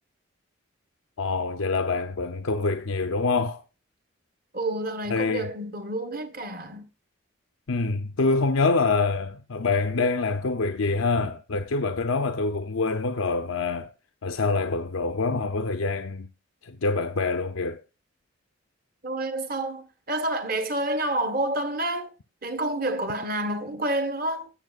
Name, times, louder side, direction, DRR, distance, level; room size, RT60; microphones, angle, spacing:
voice 1, 1.2-3.6 5.1-5.5 7.7-13.9 14.2-16.3 16.6-17.8, left 3 dB, 90° left, 0.7 m, -25 dB
voice 2, 4.5-6.9 19.0-22.1 22.4-24.5, right 1 dB, 45° right, 1.5 m, -29 dB
17.0 x 7.3 x 2.5 m
head